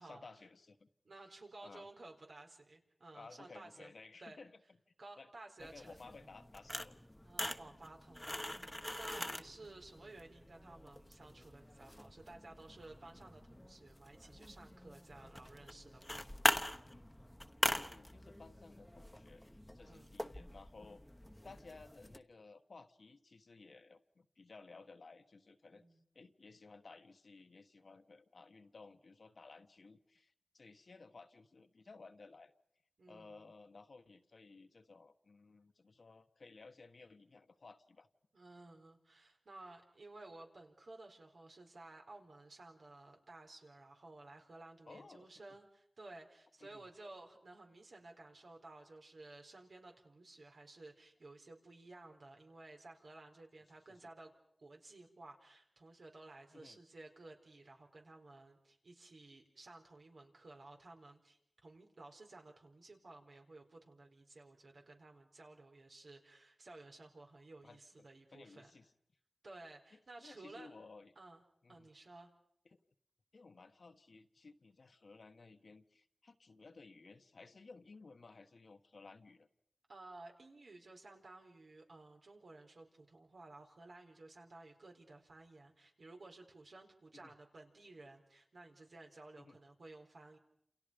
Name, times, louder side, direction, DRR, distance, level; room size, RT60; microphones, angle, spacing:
voice 1, 0.0-0.9 1.6-1.9 3.1-4.6 5.2-5.3 5.6-7.0 16.8-17.1 17.7-19.4 19.7-21.0 21.4-25.8 26.1-32.5 33.1-38.1 39.6-39.7 44.9-45.3 46.6-46.9 53.9-54.1 56.5-56.8 67.6-68.1 68.3-68.9 69.9-71.1 71.6-71.9 72.7-72.8 73.3-79.5 87.2-87.3 89.4-89.6, left 3 dB, 75° left, 8 dB, 1.4 m, -57 dB
voice 2, 1.0-3.9 4.2-4.4 5.0-6.2 7.2-16.2 19.8-20.1 25.7-26.0 33.0-33.5 38.3-54.3 54.6-68.7 69.4-70.7 71.2-71.4 71.7-72.3 79.9-90.4, right 2 dB, 80° right, 2 dB, 4.4 m, -55 dB
sound 1, 5.6-22.2, left 1 dB, 10° left, 1.1 m, -42 dB
30.0 x 28.5 x 5.3 m, 0.73 s
wide cardioid pair, 80°, 0 cm